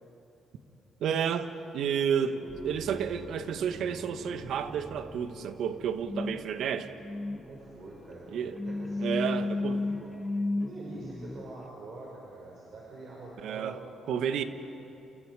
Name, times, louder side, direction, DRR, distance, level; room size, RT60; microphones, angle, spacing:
voice 1, 1.0-2.4 2.6-6.9 8.3-8.6 9.0-9.8 13.4-13.8 14.1-14.4, right 8 dB, 75° right, 9 dB, 1.3 m, -31 dB
sound 1, 2.2-11.6, left 2 dB, 15° left, 1.1 m, -36 dB
sound 2, 2.5-10.3 10.8-11.6, equal, 5° right, 4.4 m, -53 dB
voice 2, 7.4-8.4 8.6-9.3 9.7-10.1 10.6-13.8, right 2 dB, 55° right, -4 dB, 5.7 m, -45 dB
29.0 x 29.0 x 4.9 m, 2.9 s
cardioid pair, 90°, 0 cm